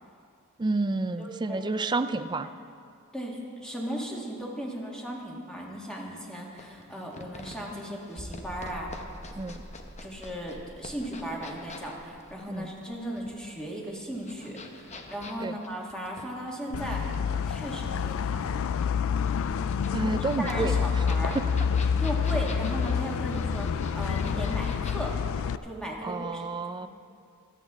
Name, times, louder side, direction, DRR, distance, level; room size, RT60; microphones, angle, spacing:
voice 1, 0.6-2.5 9.4-9.6 12.5-12.7 15.4-15.6 19.9-20.8 21.3-21.4 26.0-26.9, right 3 dB, 20° right, 11 dB, 0.4 m, -30 dB
voice 2, 1.2-1.8 2.4-2.5 3.1-8.9 10.0-17.2 17.4-18.7 19.9-20.1 20.4-21.4 22.0-25.2 25.6-26.4 26.8-26.9, right 1 dB, 5° left, -3 dB, 1.8 m, -36 dB
sound 1, 6.6-25.1, left 3 dB, 30° left, 0.9 m, -46 dB
sound 2, 8.2-13.6 13.9-14.0 14.5-14.6, equal, 45° right, 1.7 m, -46 dB
sound 3, 16.7-25.6, left 6 dB, 65° left, 0.3 m, -28 dB
24.5 x 8.4 x 3.6 m, 2.3 s
head